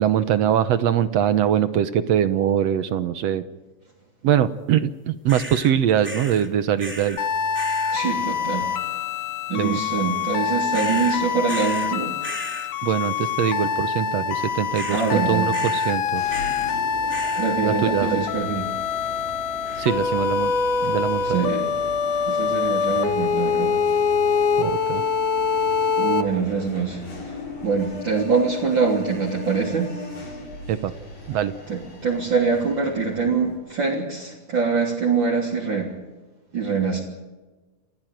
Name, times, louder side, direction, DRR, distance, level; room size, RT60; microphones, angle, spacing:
voice 1, 0.0-3.4 4.2-7.2 9.6-9.8 12.8-16.2 17.6-18.2 19.8-20.5 20.8-21.5 24.6-25.0 30.7-30.9 31.3-31.5, right 10 dB, 70° right, 13 dB, 1.9 m, -22 dB
sound 1, 5.3-5.7 6.0-6.5 6.8-7.3 7.5-8.0 10.7-11.9 12.2-12.7 14.7-15.2 15.5-16.0 16.3-16.7 17.1-17.5 19.7-20.1, right 1 dB, 5° right, 1.9 m, -36 dB
sound 2, 7.2-26.2, left 5 dB, 85° left, 3.0 m, -24 dB
voice 2, 7.9-9.0 9.5-12.2 14.9-15.5 17.4-18.7 20.8-20.9 21.2-21.7 22.3-23.8 26.0-30.4 31.7-35.9 36.5-37.0, right 5 dB, 40° right, -2 dB, 3.9 m, -24 dB
sound 3, 16.1-33.6, left 1 dB, 55° left, 6.7 m, -39 dB
28.5 x 15.0 x 9.2 m, 1.2 s
omnidirectional pair, 3.4 m